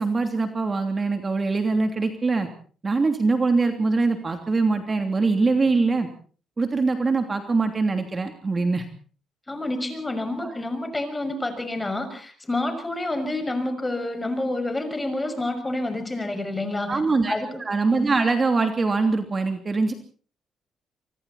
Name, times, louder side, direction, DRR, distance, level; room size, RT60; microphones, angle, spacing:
voice 1, 0.0-2.5 2.8-6.1 6.6-8.8 10.4-10.5 16.9-19.9, right 3 dB, 30° right, 6 dB, 3.0 m, -23 dB
voice 2, 9.5-17.0 17.3-17.6, left 2 dB, 15° left, 8 dB, 6.1 m, -28 dB
25.0 x 24.5 x 4.2 m, 0.43 s
cardioid pair, 90°, 0 cm